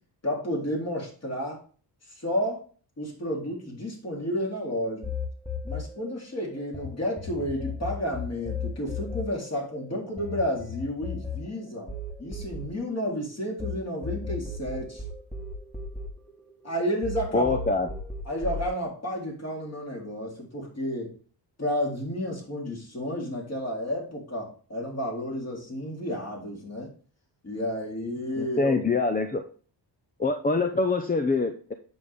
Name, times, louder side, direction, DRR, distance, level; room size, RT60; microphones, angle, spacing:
voice 1, 0.2-1.6 2.2-2.6 3.0-5.1 5.6-11.9 12.2-15.0 16.6-17.5 17.8-17.9 18.3-21.1 21.6-26.9 27.4-28.8, equal, 35° left, -2 dB, 4.0 m, -31 dB
sound 1, 5.0-6.9 7.2-13.7 14.0-16.7 17.0-18.7, left 4 dB, 5° left, 1.6 m, -35 dB
voice 2, 17.3-17.9 28.4-29.4 30.2-31.7, left 3 dB, 20° left, 6 dB, 0.7 m, -25 dB
8.2 x 6.8 x 3.7 m, 0.41 s
cardioid pair, 105°, 43 cm